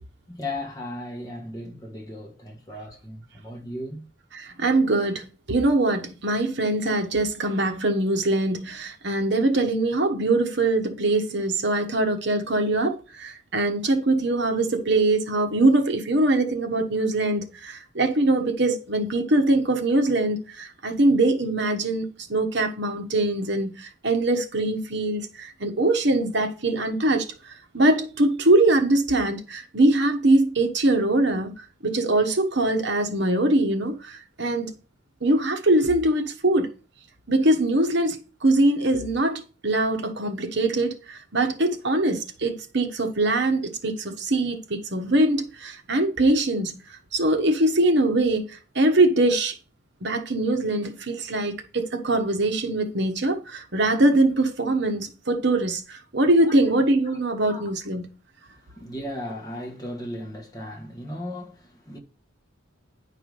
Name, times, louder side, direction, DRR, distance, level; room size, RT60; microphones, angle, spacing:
voice 1, 0.3-4.1 56.4-56.7 57.5-57.7 58.5-62.0, left 1 dB, 20° left, 1.5 m, -36 dB
voice 2, 4.3-34.7 35.2-36.7 37.3-46.7 47.1-49.6 50.0-58.1, right 2 dB, 55° right, 1.2 m, -22 dB
10.0 x 4.9 x 5.3 m
head